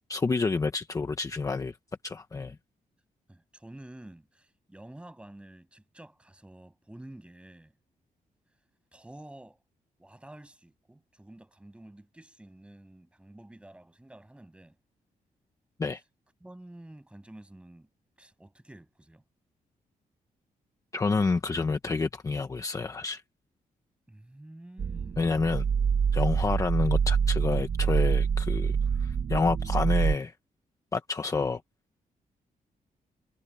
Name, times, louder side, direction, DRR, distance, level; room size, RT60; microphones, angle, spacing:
voice 1, 0.1-1.8 2.0-2.6 15.8-16.0 20.9-23.2 25.2-25.6 26.1-30.3 30.9-31.6, left 4 dB, 20° left, 1.0 m, -29 dB
voice 2, 3.3-7.7 8.9-9.6 10.0-14.8 16.4-17.9 18.2-19.2 24.1-25.3, right 1 dB, 5° right, 6.8 m, -49 dB
sound 1, 24.8-30.2, right 6 dB, 45° right, 1.2 m, -26 dB
wide cardioid pair, 155°, 15 cm